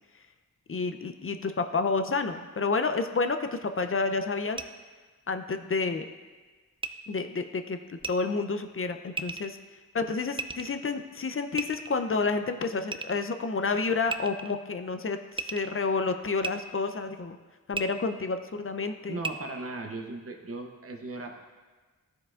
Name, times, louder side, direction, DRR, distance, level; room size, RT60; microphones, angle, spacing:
voice 1, 0.7-4.6 5.3-6.1 7.1-9.6 9.9-17.4 17.7-19.2, left 4 dB, 40° left, 8 dB, 0.5 m, -30 dB
sound 1, 4.5-4.6 6.8-6.9 8.0-8.1 9.2-9.5 10.4-10.8 11.6-12.1 12.9-13.2 14.1-14.6 15.3-15.7 16.4-16.5 17.7-17.8 19.2-19.3, right 4 dB, 15° right, 0.3 m, -34 dB
voice 2, 19.1-21.5, right 2 dB, 40° right, 3 dB, 0.8 m, -37 dB
13.0 x 4.7 x 2.4 m, 1.3 s
cardioid pair, 50°, 34 cm